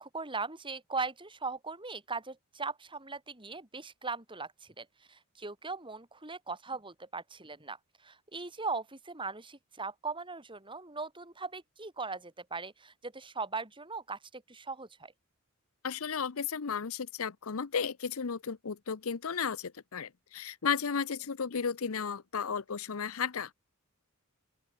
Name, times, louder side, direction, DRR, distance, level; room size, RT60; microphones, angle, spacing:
voice 1, 0.0-7.8 8.0-15.1, right 4 dB, 20° right, 4.1 m, -39 dB
voice 2, 15.8-23.5, left 6 dB, 65° left, 0.7 m, -34 dB
open air
head